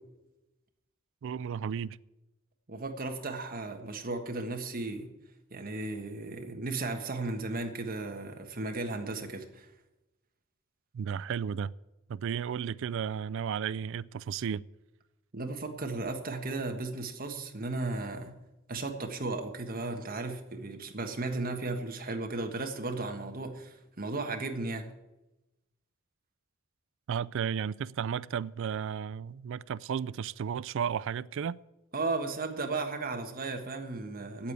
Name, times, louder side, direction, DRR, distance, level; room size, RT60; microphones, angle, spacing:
voice 1, 1.2-2.0 10.9-11.7 12.1-14.6 27.1-31.6, right 7 dB, 60° right, 0.3 m, -33 dB
voice 2, 2.7-5.1 5.5-9.7 15.3-18.4 18.7-24.9 31.9-34.5, right 3 dB, 45° right, 1.4 m, -35 dB
8.7 x 8.4 x 9.4 m
head